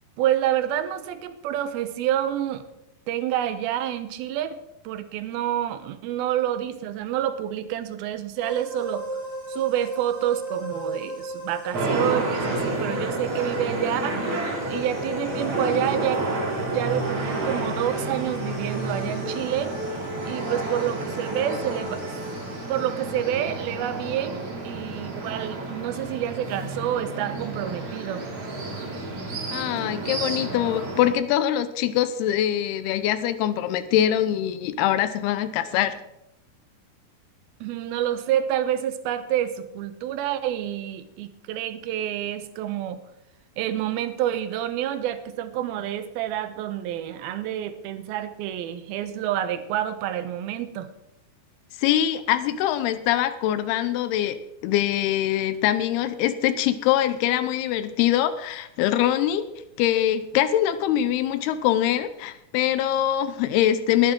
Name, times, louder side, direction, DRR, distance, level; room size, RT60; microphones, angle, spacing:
voice 1, 0.2-2.6 3.1-9.1 9.5-14.2 14.7-16.3 16.7-19.7 20.3-22.0 22.7-28.2 37.6-43.0 43.6-50.9, right 11 dB, 80° right, 10 dB, 2.7 m, -28 dB
sound 1, 8.4-23.8, left 1 dB, 30° left, 7.1 m, -36 dB
sound 2, 11.7-31.1, right 2 dB, 45° right, 3.4 m, -30 dB
voice 2, 29.5-36.0 51.8-54.4 54.6-59.5 59.8-64.1, left 11 dB, 90° left, 11 dB, 2.7 m, -23 dB
20.0 x 9.1 x 3.7 m, 0.83 s
omnidirectional pair, 4.4 m